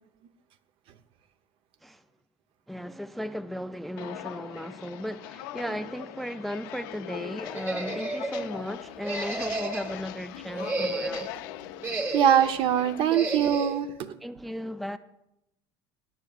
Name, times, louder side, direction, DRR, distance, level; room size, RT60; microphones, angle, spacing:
voice 1, 2.7-11.3 14.2-15.0, equal, ahead, 0.3 m, -36 dB
Walk footsteps, 4.0-13.0, left 14 dB, 85° left, 0.5 m, -41 dB
sound 1, 7.5-8.5 9.0-10.0 10.5-11.3 11.8-12.6 13.1-13.8, right 2 dB, 20° right, 1.3 m, -32 dB
sound 2, 8.8-13.1, right 3 dB, 75° right, 4.2 m, -54 dB
voice 2, 12.1-14.1, right 9 dB, 55° right, 0.8 m, -23 dB
19.5 x 10.5 x 2.4 m
supercardioid pair, 120°, 11 cm